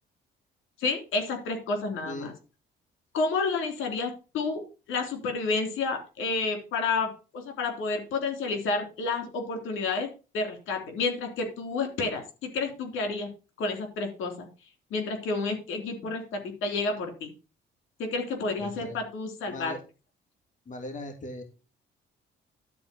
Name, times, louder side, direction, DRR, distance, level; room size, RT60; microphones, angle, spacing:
voice 1, 0.8-2.3 3.1-4.6 4.9-10.1 10.3-13.3 13.6-14.5 14.9-17.3 18.0-19.7, left 3 dB, 85° left, 4 dB, 3.5 m, -30 dB
voice 2, 18.6-19.0 19.5-19.8 20.7-21.4, left 1 dB, 40° left, 5 dB, 2.6 m, -39 dB
12.0 x 4.5 x 7.0 m, 0.32 s
cardioid pair, 90°, 20 cm